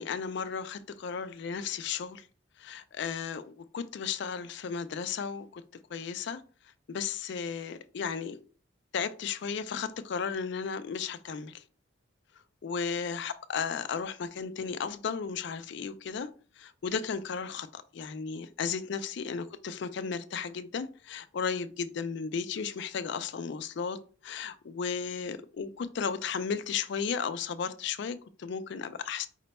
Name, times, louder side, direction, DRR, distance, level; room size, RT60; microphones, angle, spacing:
voice 1, 0.0-2.3 2.6-5.6 5.9-6.4 6.9-8.4 8.9-11.6 12.6-16.3 16.6-24.0 24.2-29.3, left 6 dB, 55° left, 0.3 m, -34 dB
5.0 x 2.2 x 4.0 m
head